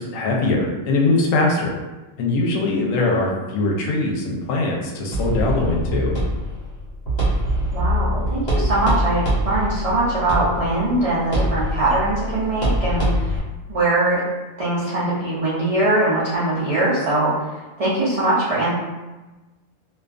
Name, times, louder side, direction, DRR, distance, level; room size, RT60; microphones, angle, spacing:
voice 1, 0.0-1.8 2.2-6.2, left 2 dB, 85° left, -1 dB, 1.0 m, -21 dB
sound 1, 5.1-13.4, equal, 55° left, 1.0 m, -23 dB
voice 2, 7.7-13.4 13.7-14.2 14.6-18.7, right 2 dB, 70° right, -9 dB, 0.3 m, -21 dB
2.3 x 2.3 x 2.4 m, 1.1 s
omnidirectional pair, 1.3 m